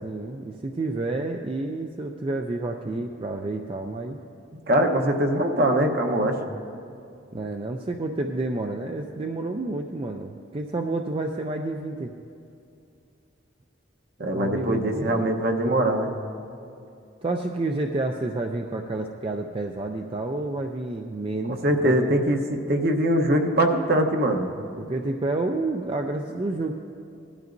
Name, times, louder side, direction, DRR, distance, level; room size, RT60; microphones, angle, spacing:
voice 1, 0.0-4.2 7.3-12.1 14.3-15.4 17.2-22.2 24.8-26.7, right 2 dB, 30° right, 3 dB, 0.4 m, -29 dB
voice 2, 4.7-6.4 14.2-16.1 21.5-24.5, right 1 dB, 50° right, 4 dB, 1.0 m, -22 dB
19.0 x 12.0 x 2.6 m, 2.6 s
head